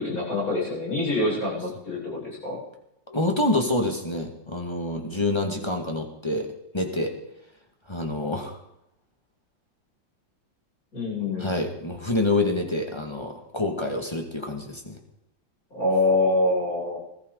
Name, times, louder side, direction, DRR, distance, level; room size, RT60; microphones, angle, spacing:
voice 1, 0.0-2.6 10.9-11.6 15.7-17.0, left 2 dB, 45° left, -6 dB, 8.3 m, -25 dB
voice 2, 3.1-6.5 6.7-7.1 7.9-8.6 11.4-15.0, left 2 dB, 15° left, 2 dB, 2.1 m, -27 dB
20.5 x 13.5 x 4.1 m, 0.83 s
omnidirectional pair, 2.2 m